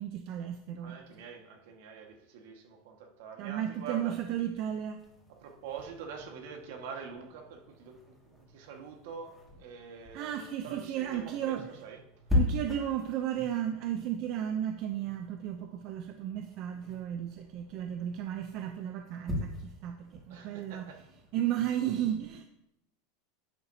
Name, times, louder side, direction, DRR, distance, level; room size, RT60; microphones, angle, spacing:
voice 1, 0.0-1.0 3.4-5.0 10.1-11.7 12.3-20.9 21.3-22.4, right 10 dB, 45° right, 6 dB, 0.6 m, -34 dB
voice 2, 0.8-4.1 5.3-8.0 8.2-12.0 20.3-21.0, right 6 dB, 65° right, 3 dB, 1.6 m, -45 dB
sound 1, 5.0-21.7, left 2 dB, ahead, 2.0 m, -40 dB
11.0 x 8.7 x 2.8 m, 0.85 s
supercardioid pair, 160°, 0 cm